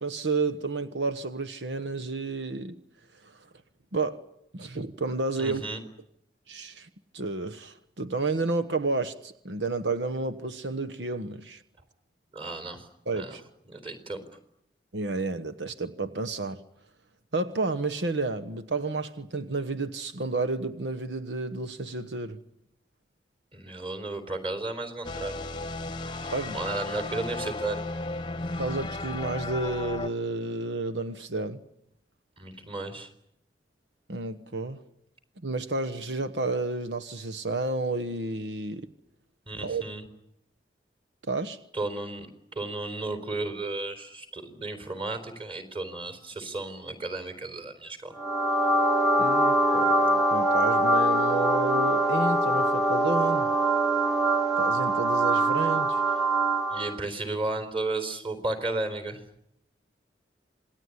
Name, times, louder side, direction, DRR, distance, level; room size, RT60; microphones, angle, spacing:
voice 1, 0.0-2.8 3.2-3.4 3.9-4.3 4.5-5.6 6.5-6.9 7.1-11.6 13.1-13.4 14.9-16.6 17.3-22.4 26.3-26.6 28.6-31.6 34.1-34.8 35.4-38.9 39.6-39.8 41.3-41.6 49.2-53.5 54.6-56.0, right 3 dB, 85° right, 1.2 m, -31 dB
voice 2, 5.4-5.8 12.3-12.9 13.1-13.4 13.7-14.2 23.5-25.4 26.1-27.8 32.4-33.1 39.5-40.0 41.7-42.3 42.5-48.1 56.7-59.2, right 2 dB, 30° right, 4.0 m, -34 dB
sound 1, 25.0-30.1, left 2 dB, 25° left, 1.0 m, -34 dB
sound 2, 48.2-57.0, right 1 dB, ahead, 1.1 m, -23 dB
27.0 x 20.0 x 10.0 m
head